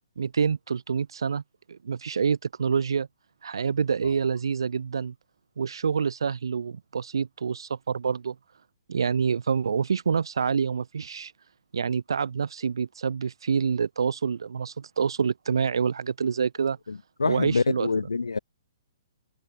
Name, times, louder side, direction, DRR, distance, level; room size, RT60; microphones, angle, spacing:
voice 1, 0.2-1.4 1.7-3.1 3.4-5.1 5.6-8.4 8.9-11.3 11.7-16.8 17.3-17.9, right 6 dB, 75° right, 0.7 m, -27 dB
voice 2, 16.9-18.4, left 4 dB, 85° left, 0.8 m, -26 dB
figure-of-eight pair, 125°, 3 cm